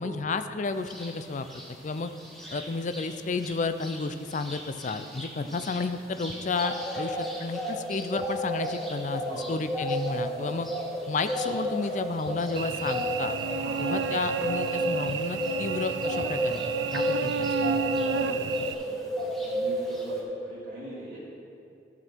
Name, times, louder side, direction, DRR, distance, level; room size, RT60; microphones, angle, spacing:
voice 1, 0.0-1.5 1.8-2.1 2.5-10.7 11.1-13.3 13.8-16.6 16.9-17.8, left 3 dB, 45° left, 10 dB, 0.4 m, -32 dB
sound 1, 0.9-1.1 1.5-3.1 3.4-3.5 3.8-18.8 19.1-20.2, equal, ahead, 1.5 m, -32 dB
Cricket / Buzz, 12.6-18.7, right 6 dB, 85° right, 0.4 m, -31 dB
voice 2, 13.5-13.9 17.8-19.1 19.4-21.2, right 1 dB, 50° right, -11 dB, 2.3 m, -43 dB
14.0 x 6.3 x 4.5 m, 2.6 s
head